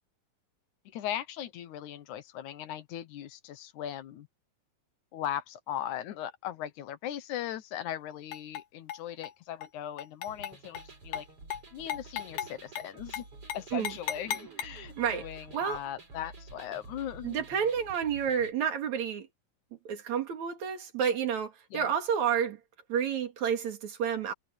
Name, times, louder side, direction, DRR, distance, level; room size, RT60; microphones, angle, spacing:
voice 1, 0.9-4.3 5.1-11.3 11.7-13.2 13.5-17.4 21.7-21.9, left 11 dB, 70° left, 2.2 m, -39 dB
sound 1, 8.3-8.6 8.9-9.3 9.6-9.7 10.0-10.9 11.1-11.3 11.5-11.6 11.9-12.5 12.8-12.9 13.1-13.3 13.5-14.6, left 10 dB, 90° left, 3.1 m, -36 dB
sound 2, 10.3-18.5, right 3 dB, 40° right, 7.2 m, -50 dB
voice 2, 17.2-19.3 19.8-22.6 22.9-24.3, right 8 dB, 60° right, 3.5 m, -30 dB
omnidirectional pair, 3.9 m